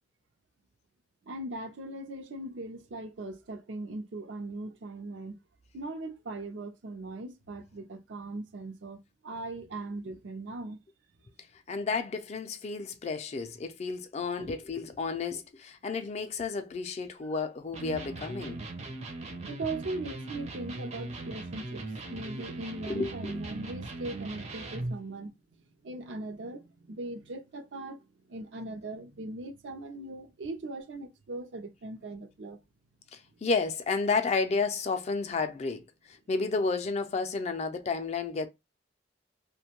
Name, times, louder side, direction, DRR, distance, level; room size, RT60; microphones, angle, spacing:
voice 1, 1.3-5.4 5.7-9.0 9.2-10.8 14.4-14.5 19.5-21.8 22.1-25.3 25.8-32.6, right 2 dB, 85° right, 0.5 m, -39 dB
voice 2, 11.7-18.6 22.9-23.3 33.1-35.8 36.1-38.5, left 4 dB, 35° left, 0.3 m, -31 dB
Electric guitar, 17.7-25.0, right 2 dB, 35° right, 0.5 m, -39 dB
2.5 x 2.2 x 2.8 m
head